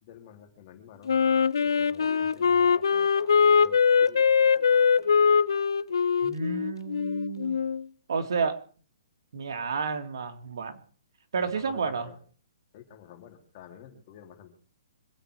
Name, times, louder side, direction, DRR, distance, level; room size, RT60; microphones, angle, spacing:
voice 1, 0.0-1.1 1.6-5.1 11.3-12.2 12.7-14.5, left 9 dB, 35° left, 2 dB, 3.7 m, -50 dB
Wind instrument woodwind instrument, 1.1-7.8, left 6 dB, 85° left, 0.7 m, -22 dB
voice 2, 6.2-7.6 8.1-8.6 9.3-10.8 11.3-12.1, right 5 dB, 70° right, 6 dB, 2.5 m, -31 dB
26.0 x 9.1 x 4.9 m, 0.43 s
hypercardioid pair, 160°, 2 cm